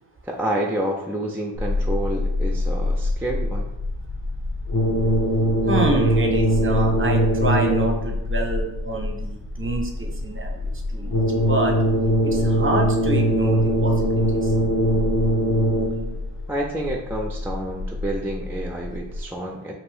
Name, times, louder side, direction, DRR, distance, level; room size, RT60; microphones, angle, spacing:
voice 1, 0.2-3.7 16.5-19.7, right 1 dB, 5° right, 0 dB, 0.4 m, -28 dB
sound 1, 1.5-19.2, left 2 dB, 80° left, 0.5 m, -29 dB
sound 2, 4.7-8.1 11.1-16.1, equal, 50° left, 0.9 m, -21 dB
voice 2, 5.6-11.8 12.2-14.1, right 2 dB, 30° right, 2 dB, 0.7 m, -27 dB
2.6 x 2.5 x 3.4 m, 0.87 s
cardioid pair, 40°, 44 cm